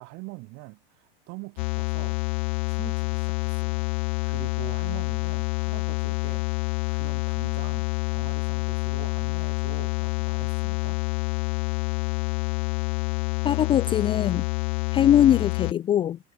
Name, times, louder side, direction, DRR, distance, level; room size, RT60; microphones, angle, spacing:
voice 1, 0.0-2.2 2.7-3.9 4.2-11.0, right 28 dB, 50° right, 3.9 m, -44 dB
sound 1, 1.6-15.7, left 30 dB, 55° left, 1.0 m, -27 dB
voice 2, 13.4-14.5 14.9-16.2, left 10 dB, 15° left, 0.4 m, -21 dB
supercardioid pair, 130°, 31 cm